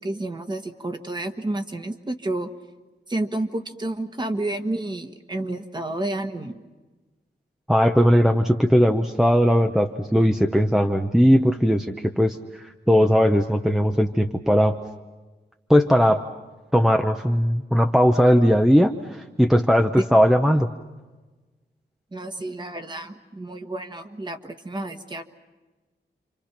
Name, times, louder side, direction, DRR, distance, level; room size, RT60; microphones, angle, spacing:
voice 1, 0.0-2.5 3.1-6.6 22.1-25.2, right 2 dB, 25° right, 6 dB, 1.5 m, -30 dB
voice 2, 7.7-14.8 15.7-16.2 16.7-20.7, equal, ahead, 5 dB, 0.8 m, -18 dB
29.0 x 26.0 x 5.9 m, 1.2 s
wide cardioid pair, 145°, 18 cm